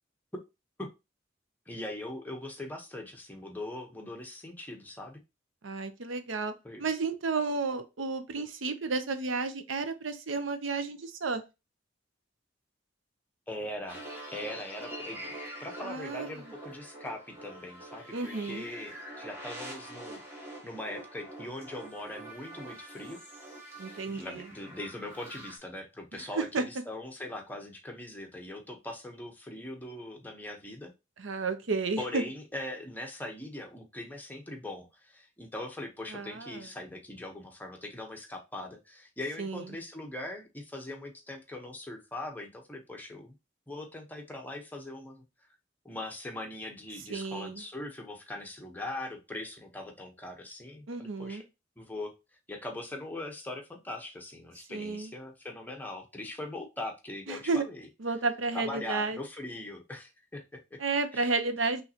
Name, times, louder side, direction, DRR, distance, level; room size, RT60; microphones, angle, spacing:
voice 1, 1.7-5.2 6.6-6.8 13.5-14.0 14.3-15.2 15.6-20.2 20.6-23.2 24.1-30.9 32.0-43.3 43.7-45.2 45.8-51.4 51.8-52.1 52.5-57.9 58.5-60.8 61.1-61.3, left 1 dB, 10° left, 2 dB, 0.9 m, -41 dB
voice 2, 5.6-6.5 6.8-11.4 15.8-16.5 18.1-18.7 23.8-24.5 26.1-26.6 31.2-32.2 36.1-36.7 39.4-39.7 47.1-47.6 50.9-51.4 54.7-55.1 57.3-57.6 58.0-59.2 60.8-61.8, right 4 dB, 85° right, 9 dB, 0.7 m, -32 dB
sound 1, 13.9-25.6, right 1 dB, 15° right, 1.5 m, -45 dB
5.5 x 3.2 x 2.8 m, 0.25 s
head